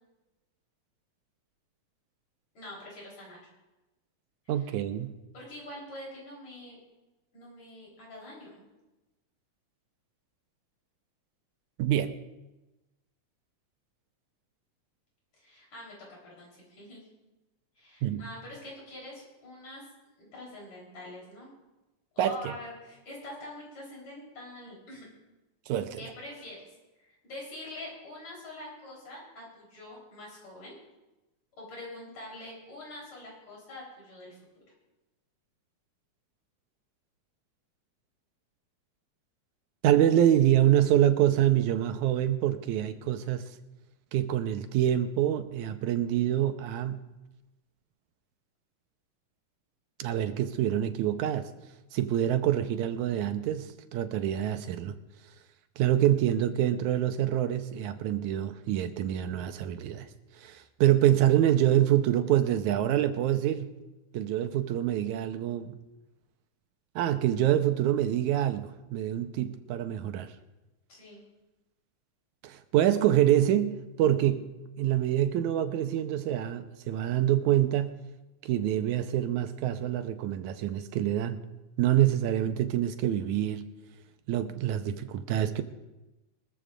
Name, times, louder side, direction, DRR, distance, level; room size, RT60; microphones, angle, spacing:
voice 1, 2.5-3.4 4.5-4.7 5.3-6.8 7.3-8.6 15.4-17.0 17.8-19.8 20.2-21.5 22.1-25.1 26.0-26.6 27.0-30.8 31.5-34.6 70.9-71.2, left 1 dB, 65° left, 5.0 m, -45 dB
voice 2, 4.5-5.1 11.8-12.2 18.0-18.2 22.2-22.4 25.7-26.0 39.8-43.5 44.1-47.1 50.0-51.5 51.9-55.0 55.8-60.1 60.4-63.8 64.1-65.8 67.0-70.3 72.4-74.5 74.8-78.0 78.4-81.4 81.8-83.7 84.3-85.6, right 11 dB, 85° right, 2.2 m, -26 dB
24.5 x 14.0 x 2.5 m
omnidirectional pair, 3.4 m